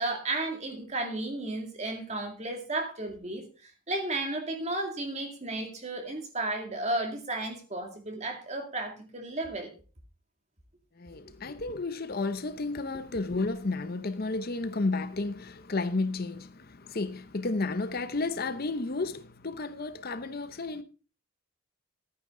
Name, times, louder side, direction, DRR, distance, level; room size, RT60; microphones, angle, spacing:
voice 1, 0.0-9.7, right 2 dB, 30° right, 2.2 m, -33 dB
voice 2, 11.0-20.8, left 3 dB, 45° left, 0.7 m, -32 dB
13.5 x 9.3 x 3.8 m
head